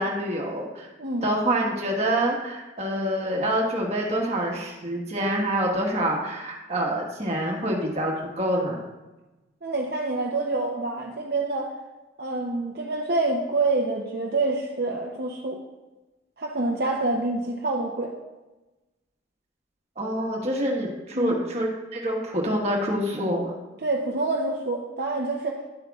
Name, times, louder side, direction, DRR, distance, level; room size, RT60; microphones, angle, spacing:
voice 1, 0.0-0.9 1.2-8.8 20.0-23.5, right 1 dB, 35° right, -1 dB, 1.3 m, -26 dB
voice 2, 1.0-1.3 9.6-11.7 12.2-15.6 16.4-18.1 21.2-21.3 23.8-25.6, right 2 dB, 55° right, -1 dB, 0.7 m, -27 dB
11.0 x 7.9 x 2.4 m, 1.1 s
head